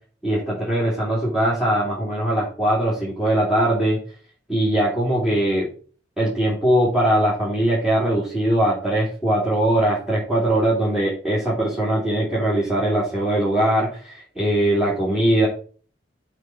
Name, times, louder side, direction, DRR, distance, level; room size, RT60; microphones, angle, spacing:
voice 1, 0.2-4.0 4.5-5.7 6.2-15.5, right 1 dB, 5° right, -7 dB, 2.9 m, -21 dB
7.7 x 4.7 x 5.4 m, 0.41 s
head